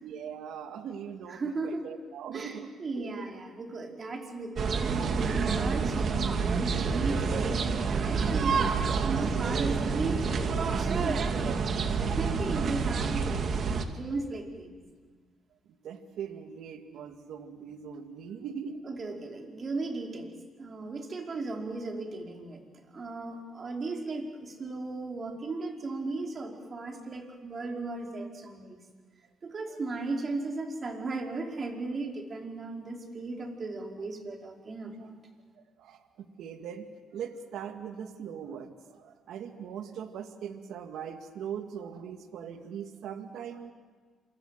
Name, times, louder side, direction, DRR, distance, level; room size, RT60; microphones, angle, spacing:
voice 1, 0.0-2.7 3.0-3.1 15.8-18.8 29.7-29.8 35.0-35.1 35.8-36.9 37.1-43.7, right 8 dB, 80° right, 6 dB, 2.2 m, -40 dB
voice 2, 1.3-1.8 2.3-8.7 9.0-11.3 12.0-14.8 18.8-22.6 22.9-28.8 29.4-35.2, right 3 dB, 40° right, 1 dB, 5.1 m, -36 dB
sound 1, 4.6-13.8, right 5 dB, 55° right, 2.3 m, -28 dB
28.0 x 25.0 x 7.6 m, 1.5 s
cardioid pair, 90°, 0 cm